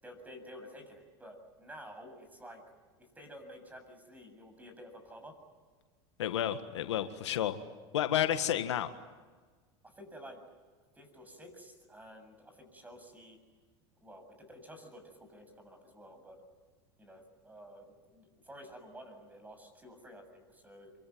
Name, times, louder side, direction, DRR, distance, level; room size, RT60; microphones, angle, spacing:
voice 1, 0.0-2.6 3.0-5.4 9.8-10.4 10.9-13.4 14.0-16.4 17.0-20.9, equal, 10° right, 6 dB, 7.7 m, -51 dB
voice 2, 6.2-7.6 7.9-8.9, left 11 dB, 90° left, 9 dB, 1.7 m, -31 dB
26.5 x 24.0 x 9.4 m, 1.4 s
hypercardioid pair, 105°, 14 cm